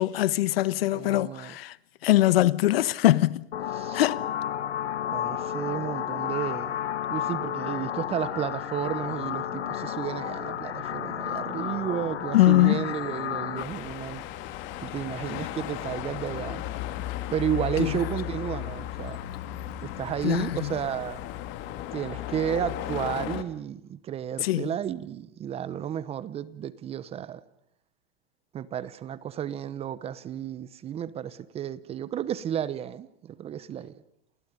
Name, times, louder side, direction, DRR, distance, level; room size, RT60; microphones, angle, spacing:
voice 1, 0.0-1.8 2.0-3.5 3.9-4.2 12.3-12.9 17.8-17.9 20.2-20.8 24.4-24.7, left 16 dB, 60° left, 1.2 m, -22 dB
voice 2, 0.9-1.5 3.8-4.0 5.1-6.8 7.1-14.2 14.8-16.6 17.3-19.3 19.8-21.2 21.9-27.4 28.5-33.9, right 9 dB, 20° right, 0.9 m, -32 dB
sound 1, 3.5-13.6, left 10 dB, 85° left, 2.3 m, -32 dB
sound 2, 13.6-23.4, left 13 dB, 35° left, 2.3 m, -35 dB
29.5 x 29.5 x 5.3 m
hypercardioid pair, 145°, 33 cm